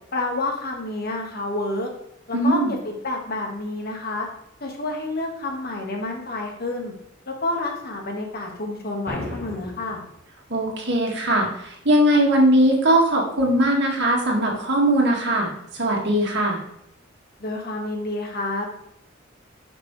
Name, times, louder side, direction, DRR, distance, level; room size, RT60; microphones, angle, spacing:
voice 1, 0.1-1.9 2.3-4.3 4.6-6.9 7.3-10.0 17.4-18.6, left 2 dB, 50° left, 1 dB, 1.7 m, -29 dB
voice 2, 2.3-2.7 10.5-16.6, right 1 dB, 60° right, -1 dB, 2.0 m, -20 dB
sound 1, 9.1-10.1, left 1 dB, 10° left, 1.5 m, -34 dB
11.5 x 5.3 x 3.2 m, 0.77 s
head